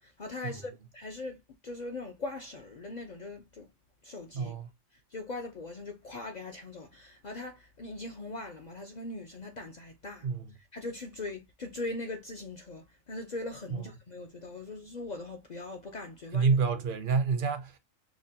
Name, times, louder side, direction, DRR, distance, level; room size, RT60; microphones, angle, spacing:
voice 1, 0.0-1.4 1.6-3.7 4.0-4.5 5.1-10.3 10.7-16.5, left 2 dB, 60° left, 0.4 m, -40 dB
voice 2, 4.3-4.7 10.2-10.5 16.3-17.8, right 5 dB, 55° right, 0.6 m, -28 dB
4.8 x 2.2 x 2.7 m
omnidirectional pair, 1.4 m